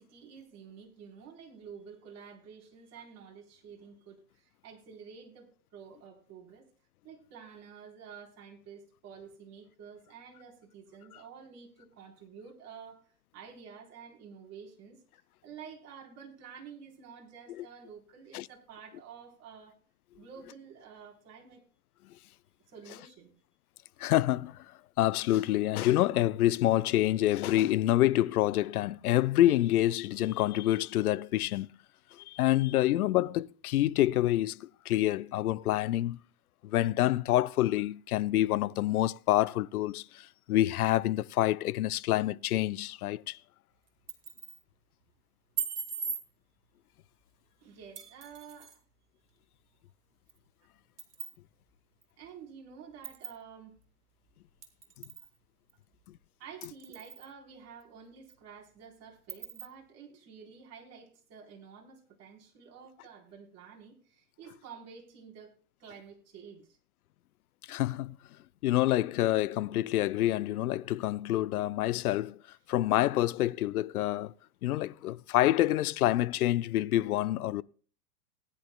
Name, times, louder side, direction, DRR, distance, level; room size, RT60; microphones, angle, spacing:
voice 1, 0.0-6.7 7.0-19.8 20.2-21.6 22.7-23.3 47.6-48.8 52.2-53.8 56.4-66.8, right 6 dB, 35° right, 3.9 m, -50 dB
voice 2, 24.0-24.7 25.0-31.8 32.1-36.2 36.6-43.4 67.7-68.2 68.6-72.4 72.7-74.3 74.6-77.6, left 14 dB, 70° left, 0.6 m, -27 dB
sound 1, 43.9-44.6 45.6-46.2 48.0-48.8 50.3-50.4 51.0-51.4 52.0-52.1 53.0-53.4 54.6-55.3 55.7-55.8 56.6-57.3 57.8-57.9 58.3-58.4 59.3-59.7, right 6 dB, 85° right, 2.2 m, -39 dB
19.0 x 10.0 x 2.2 m
hypercardioid pair, 110°, 45 cm